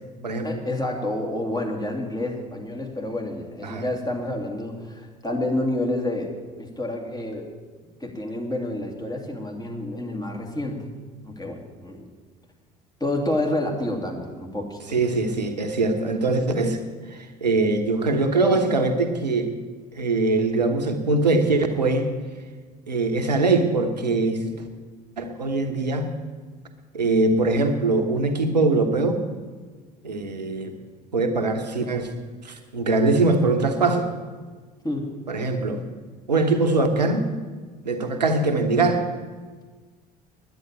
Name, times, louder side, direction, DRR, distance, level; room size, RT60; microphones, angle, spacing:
voice 1, 0.4-7.5 8.0-10.8 11.2-12.1 13.0-14.8 34.8-35.1, left 1 dB, 20° left, 1 dB, 2.7 m, -29 dB
voice 2, 14.9-16.8 17.1-19.5 19.9-22.1 22.9-24.6 25.2-26.1 26.9-29.2 30.0-30.7 31.1-32.1 32.4-34.1 35.3-35.8 36.3-37.3 37.8-39.1, right 3 dB, 90° right, 6 dB, 1.1 m, -22 dB
10.5 x 9.0 x 8.6 m, 1.5 s
figure-of-eight pair, 60°, 21 cm